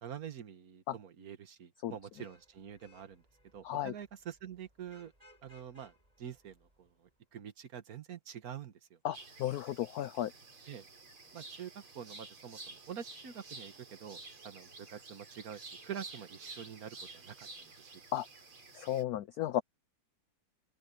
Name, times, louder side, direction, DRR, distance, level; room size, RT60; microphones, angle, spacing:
voice 1, 0.0-3.2 3.5-5.1 5.4-6.9 7.3-9.0 10.7-10.8 11.3-18.0, right 8 dB, 50° right, 1.6 m, -46 dB
Vehicle horn car horn honking / Traffic noise roadway noise, 1.9-7.2, left 1 dB, 15° right, 7.4 m, -66 dB
voice 2, 3.6-3.9 9.0-10.3 18.1-18.3 18.7-19.6, left 12 dB, 90° left, 0.8 m, -34 dB
sound 1, 9.1-19.0, right 3 dB, 85° right, 6.2 m, -51 dB
open air
omnidirectional pair, 2.2 m